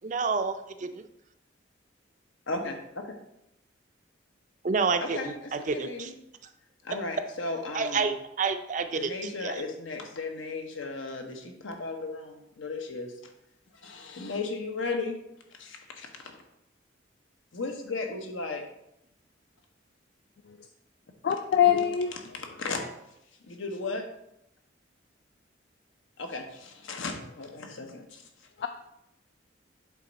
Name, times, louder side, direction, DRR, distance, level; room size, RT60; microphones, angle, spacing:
voice 1, 0.0-1.0 4.6-6.1 7.7-9.1 9.4-9.6, right 4 dB, 40° right, 9 dB, 0.4 m, -29 dB
voice 2, 2.5-2.8 3.0-3.1 5.0-6.1 6.8-8.2 9.0-13.1 13.8-15.2 15.6-16.4 17.5-18.6 22.3-22.8 23.5-24.0 26.2-28.2, left 3 dB, 85° left, 3 dB, 1.0 m, -35 dB
voice 3, 21.2-22.2 22.7-22.9 28.6-28.7, left 9 dB, 55° left, 7 dB, 0.3 m, -24 dB
8.2 x 3.5 x 4.1 m, 0.84 s
head